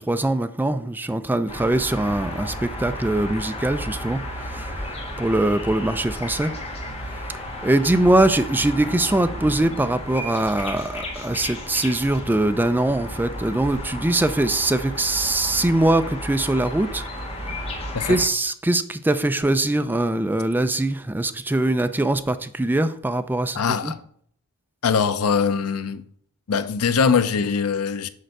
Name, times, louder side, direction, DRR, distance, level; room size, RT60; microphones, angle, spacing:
voice 1, 0.1-4.7 5.2-6.5 7.6-17.0 18.1-23.9, right 1 dB, 10° right, 0.3 m, -22 dB
sound 1, 1.5-18.3, left 1 dB, 30° left, 1.4 m, -33 dB
voice 2, 23.5-24.0 24.8-26.1 26.5-28.1, left 6 dB, 90° left, 0.6 m, -22 dB
6.5 x 4.4 x 6.4 m
head